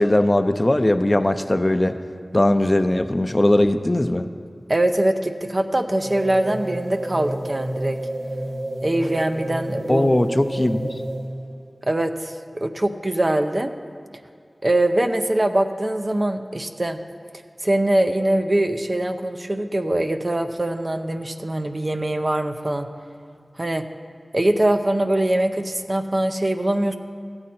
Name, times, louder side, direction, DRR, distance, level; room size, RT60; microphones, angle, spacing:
voice 1, 0.0-1.9 2.3-4.3 9.9-10.9, left 1 dB, 30° left, 9 dB, 0.5 m, -19 dB
voice 2, 4.7-8.0 8.8-10.1 11.8-13.7 14.6-17.0 17.6-22.9 23.6-23.9 24.3-27.0, right 1 dB, 40° right, 7 dB, 0.6 m, -22 dB
sound 1, 6.0-11.5, right 1 dB, 65° right, 1.7 m, -30 dB
14.0 x 8.7 x 4.2 m, 2.2 s
wide cardioid pair, 40°, 0 cm